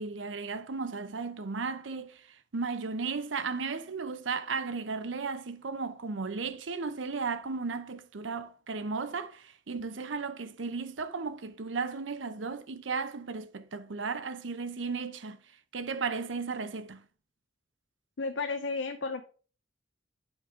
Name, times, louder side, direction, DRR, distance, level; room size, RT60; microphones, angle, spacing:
voice 1, 0.0-2.2 2.5-15.4 15.7-17.0, right 4 dB, 85° right, 0.7 m, -35 dB
voice 2, 18.2-19.2, left 4 dB, 75° left, 0.7 m, -32 dB
8.2 x 5.2 x 4.8 m
head